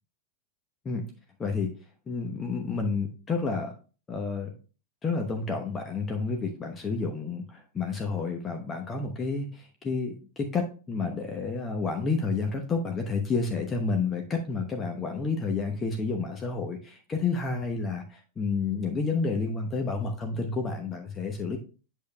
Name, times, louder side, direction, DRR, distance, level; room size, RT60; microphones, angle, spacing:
voice 1, 1.4-1.7 2.1-3.7 4.1-4.5 5.0-21.6, left 4 dB, 20° left, 3 dB, 0.9 m, -30 dB
8.4 x 6.5 x 2.2 m, 0.36 s
figure-of-eight pair, 90°, 0 cm